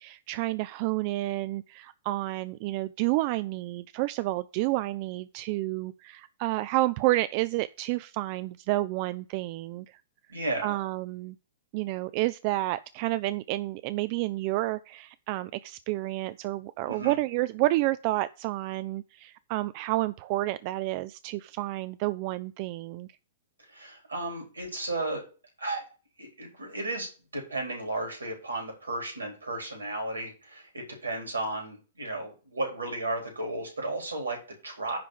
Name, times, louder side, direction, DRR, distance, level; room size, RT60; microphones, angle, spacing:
voice 1, 0.0-10.0 10.6-11.4 11.7-23.1, right 18 dB, 40° right, 0.4 m, -30 dB
voice 2, 10.3-10.8 16.9-17.1 23.7-25.2 25.6-25.8 26.2-27.1 27.3-35.0, right 2 dB, 75° right, 4.0 m, -34 dB
10.5 x 3.7 x 6.7 m
figure-of-eight pair, 105°, 0 cm